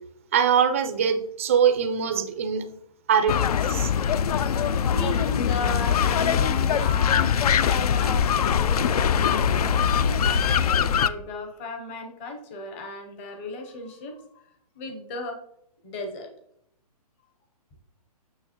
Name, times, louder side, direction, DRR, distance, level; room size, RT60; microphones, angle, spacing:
voice 1, 0.3-2.6 3.1-3.4 3.7-3.9, right 7 dB, 20° right, 8 dB, 0.4 m, -22 dB
sound 1, 3.3-11.1, left 8 dB, 70° left, 0.4 m, -22 dB
voice 2, 4.9-14.2 14.8-15.4 15.8-16.3, left 2 dB, 20° left, 4 dB, 0.7 m, -35 dB
6.5 x 6.4 x 2.9 m, 0.72 s
hypercardioid pair, 170°, 20 cm